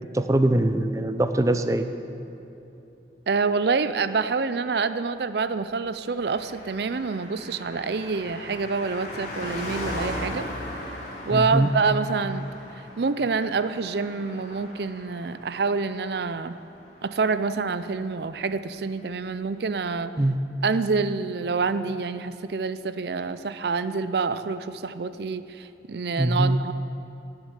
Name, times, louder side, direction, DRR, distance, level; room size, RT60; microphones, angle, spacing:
voice 1, 0.1-1.9 11.3-11.7 20.2-20.4 26.2-26.6, right 1 dB, 20° right, 9 dB, 0.5 m, -22 dB
voice 2, 3.3-10.5 11.3-12.5 13.0-16.6 17.0-20.1 20.6-26.7, right 4 dB, 65° right, 13 dB, 0.5 m, -27 dB
Car passing by, 6.1-18.0 18.2-18.3, left 1 dB, 40° left, 2.9 m, -38 dB
13.5 x 7.8 x 9.8 m, 2.9 s
head